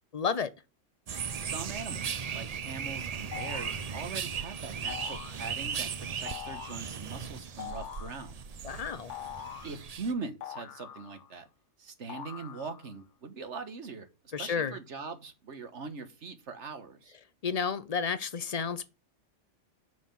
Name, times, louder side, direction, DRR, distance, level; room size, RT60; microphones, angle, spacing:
voice 1, 0.1-0.5 8.6-9.1 14.3-14.8 17.4-18.9, left 6 dB, 35° left, 0.7 m, -31 dB
sound 1, 1.1-10.1, right 6 dB, 45° right, 0.5 m, -37 dB
voice 2, 1.4-2.1 2.3-8.4 9.6-11.5 11.8-14.1 14.4-17.2, right 4 dB, 70° right, 1.6 m, -41 dB
sound 2, 3.3-3.9 4.9-5.4 6.3-6.9 7.6-8.2 9.1-9.8 10.4-11.4 12.1-12.9, left 10 dB, 75° left, 1.0 m, -43 dB
6.3 x 5.7 x 7.1 m
omnidirectional pair, 1.2 m